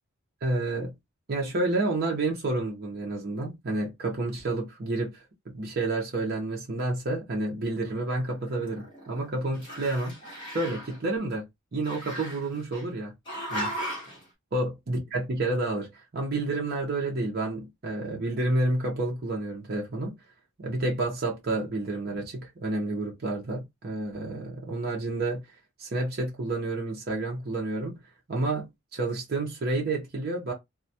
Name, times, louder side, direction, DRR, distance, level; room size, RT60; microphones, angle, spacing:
voice 1, 0.4-0.9 1.3-5.2 5.5-10.2 10.5-13.1 13.5-13.7 14.5-20.2 20.6-25.4 25.8-28.0 28.3-30.5, right 2 dB, 45° right, 0.5 m, -30 dB
Growling, 8.0-9.3 9.5-11.0 11.8-12.8 13.3-14.2, equal, 25° left, 1.0 m, -37 dB
2.2 x 2.1 x 2.7 m
head